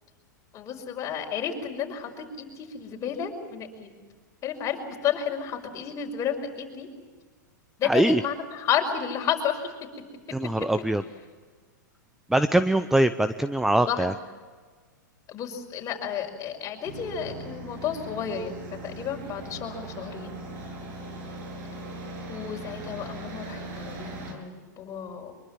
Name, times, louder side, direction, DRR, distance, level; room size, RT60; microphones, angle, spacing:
voice 1, 0.5-3.9 4.4-6.9 7.8-9.7 13.9-14.2 15.3-20.3 22.3-25.3, left 8 dB, 30° left, 2 dB, 5.4 m, -31 dB
voice 2, 7.8-8.2 10.3-11.0 12.3-14.1, right 1 dB, 5° right, 11 dB, 0.7 m, -22 dB
sound 1, 16.8-24.3, right 2 dB, 55° right, 7.6 m, -39 dB
24.5 x 22.5 x 7.5 m, 1.5 s
hypercardioid pair, 110°, 10 cm